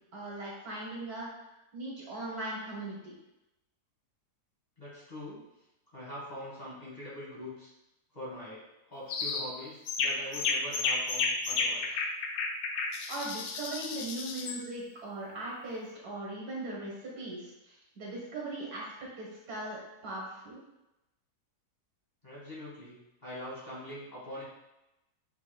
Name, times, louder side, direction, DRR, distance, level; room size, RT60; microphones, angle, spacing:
voice 1, 0.1-1.3 1.7-3.1 13.1-18.8 19.2-20.6, right 2 dB, 65° right, -4 dB, 1.7 m, -39 dB
voice 2, 4.8-5.4 5.9-7.7 8.1-12.0 22.2-24.4, left 1 dB, 25° left, -8 dB, 1.7 m, -43 dB
sound 1, 9.1-9.5 9.9-14.6, left 4 dB, 85° left, 1.2 m, -32 dB
5.7 x 4.0 x 2.2 m, 0.93 s
omnidirectional pair, 1.7 m